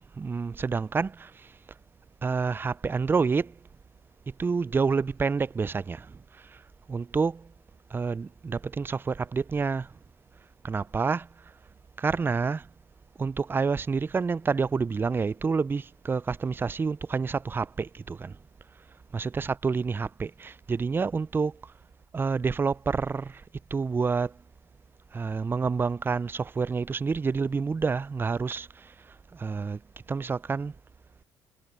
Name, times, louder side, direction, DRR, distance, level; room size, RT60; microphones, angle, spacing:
voice 1, 0.2-1.3 2.2-3.5 4.4-6.1 6.9-7.4 7.9-9.9 10.6-11.3 12.0-12.6 13.2-18.3 19.1-21.5 22.1-23.4 23.7-24.3 25.1-28.7 29.3-29.8 30.1-30.7, right 5 dB, 20° right, 0.4 m, -28 dB
supercardioid pair, 75°, 10 cm